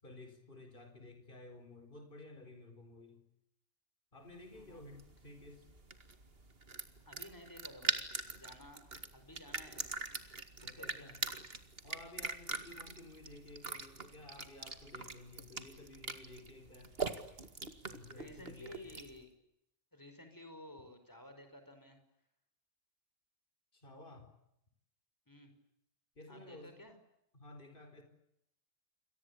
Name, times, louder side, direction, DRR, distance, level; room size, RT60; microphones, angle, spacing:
voice 1, 0.0-3.2 4.1-5.7 10.6-11.3 11.8-17.0 17.9-19.0 23.7-24.3 26.2-26.7 27.3-28.0, left 2 dB, 45° left, 6 dB, 4.8 m, -54 dB
sound 1, 4.4-19.2, right 3 dB, 50° right, 2.4 m, -43 dB
voice 2, 4.5-4.8 7.1-8.0 8.4-9.8 10.6-11.1 18.1-19.3 19.9-22.0 25.3-25.5 26.3-27.0, left 1 dB, 15° left, 7 dB, 5.4 m, -54 dB
28.5 x 23.0 x 8.5 m, 0.80 s
omnidirectional pair, 1.3 m